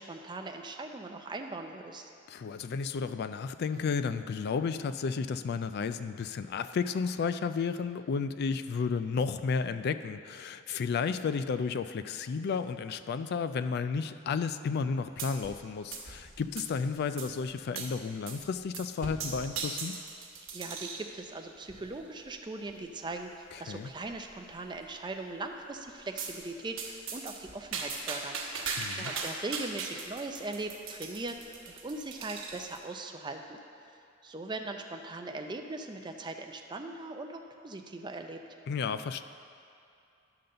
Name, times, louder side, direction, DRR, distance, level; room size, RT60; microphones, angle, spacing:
voice 1, 0.0-2.1 20.5-33.6 34.2-38.4, right 2 dB, 25° right, 4 dB, 0.5 m, -40 dB
voice 2, 2.3-20.0 23.5-23.9 28.8-29.1 38.7-39.2, left 5 dB, 55° left, 11 dB, 0.3 m, -32 dB
sound 1, 15.2-15.6 15.9-16.8 17.2-17.3 17.7-17.9 18.3-18.4 18.7-21.1 21.7-22.0 22.7-22.8 23.1-23.2 23.5-23.6 24.1-24.5 26.2-26.4 26.8-32.8, right 4 dB, 85° right, 1.1 m, -39 dB
10.5 x 3.9 x 6.6 m, 2.5 s
head